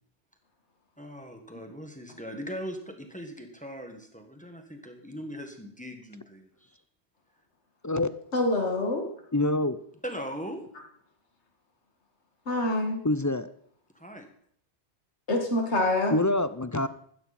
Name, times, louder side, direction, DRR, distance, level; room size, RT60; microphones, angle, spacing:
voice 1, 1.0-6.8 10.0-10.6 13.9-14.3, equal, 5° left, 4 dB, 1.6 m, -40 dB
voice 2, 8.3-9.0 12.5-13.0 15.3-16.1, left 2 dB, 85° left, 2 dB, 2.2 m, -26 dB
voice 3, 9.3-9.8 13.0-13.5 16.1-16.9, left 2 dB, 25° left, 13 dB, 0.4 m, -25 dB
15.0 x 13.0 x 4.2 m, 0.64 s
omnidirectional pair, 1.1 m